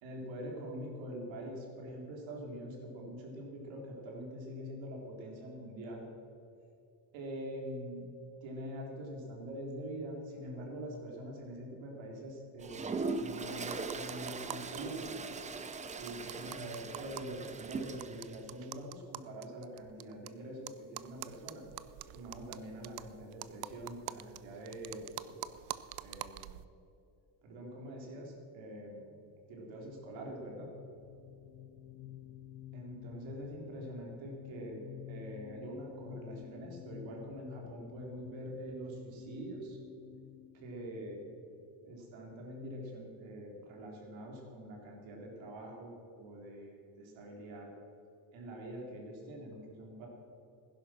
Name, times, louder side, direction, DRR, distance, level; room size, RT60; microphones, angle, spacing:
voice 1, 0.0-6.1 7.1-8.0 8.4-15.2 16.0-21.6 22.1-25.4 26.0-26.6 27.4-29.2 29.5-30.7 32.7-39.8 40.5-41.3 41.8-47.7 48.3-50.1, right 1 dB, 85° right, 0 dB, 3.7 m, -44 dB
Toilet flush, 12.6-18.4, right 4 dB, 15° right, 0.5 m, -40 dB
sound 1, 13.7-14.8 15.1-15.2 15.4-15.5 15.7-20.3 20.7-26.6, right 15 dB, 60° right, 0.6 m, -46 dB
sound 2, 29.6-42.0, left 12 dB, 45° left, 0.5 m, -51 dB
16.0 x 10.5 x 6.2 m, 2.8 s
cardioid pair, 165°, 45 cm